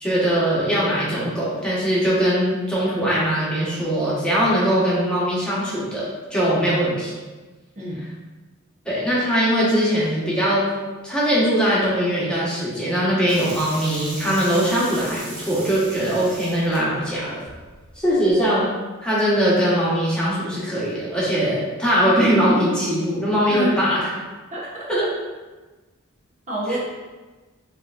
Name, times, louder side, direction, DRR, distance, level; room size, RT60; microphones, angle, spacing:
voice 1, 0.0-7.1 8.8-10.7 11.0-17.4 18.0-18.7 19.0-24.0 24.9-25.0 26.7-26.8, equal, 5° left, -9 dB, 1.3 m, -21 dB
voice 2, 7.7-8.2 23.5-23.8 24.5-25.1 26.5-26.8, left 1 dB, 35° right, -7 dB, 1.0 m, -28 dB
sound 1, 13.3-18.4, right 2 dB, 75° right, 1.2 m, -39 dB
6.7 x 2.9 x 2.6 m, 1.3 s
head